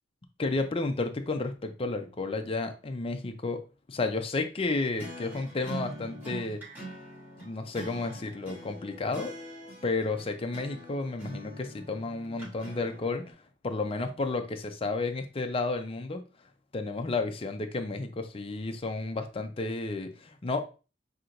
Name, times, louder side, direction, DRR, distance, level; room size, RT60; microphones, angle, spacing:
voice 1, 0.4-3.6 3.9-6.6 7.4-9.3 9.8-13.4 13.6-16.2 16.7-20.6, left 3 dB, 30° left, 6 dB, 0.5 m, -32 dB
sound 1, 4.7-13.3, right 1 dB, 10° right, 1.2 m, -44 dB
6.0 x 2.8 x 2.5 m, 0.33 s
head